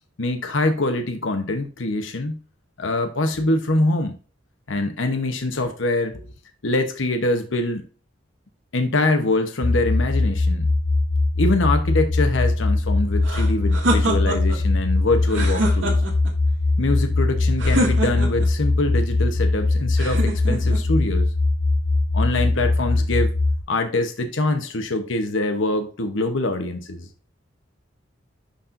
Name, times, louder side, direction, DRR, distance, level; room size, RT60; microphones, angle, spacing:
voice 1, 0.2-2.4 2.8-4.2 4.7-6.2 6.6-7.9 8.7-10.7 11.4-16.0 16.8-21.3 22.1-23.3 23.7-27.1, left 2 dB, 80° left, 6 dB, 1.0 m, -24 dB
sound 1, 9.6-23.6, left 2 dB, 35° left, 0.5 m, -21 dB
sound 2, 13.2-14.6 15.2-16.3 17.6-18.5 20.0-20.8, right 1 dB, 80° right, 2.1 m, -25 dB
11.5 x 4.3 x 2.6 m, 0.37 s
head